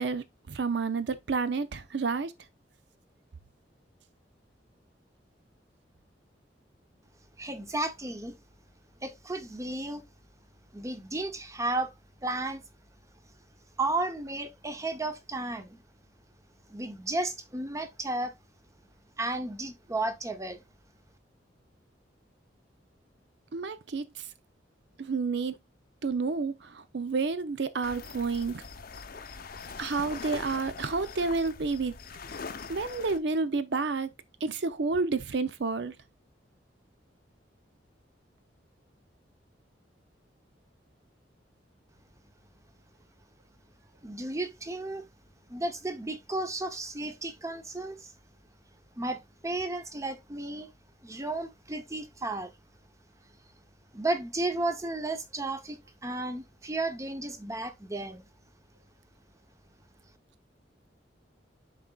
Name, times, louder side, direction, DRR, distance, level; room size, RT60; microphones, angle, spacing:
voice 1, 0.0-2.3 23.5-24.2 25.0-25.6 26.0-28.7 29.8-31.9 32.7-34.1 34.4-35.9, right 4 dB, 70° right, 0.6 m, -30 dB
voice 2, 7.4-8.4 9.0-10.0 10.7-11.9 12.2-12.6 13.8-15.8 16.7-18.3 19.2-20.6 44.0-45.1 45.5-48.1 49.0-50.7 51.0-52.5 53.9-58.3, right 2 dB, 20° right, 0.8 m, -33 dB
sound 1, 27.8-33.2, left 4 dB, 55° left, 0.7 m, -42 dB
11.0 x 3.9 x 2.3 m
head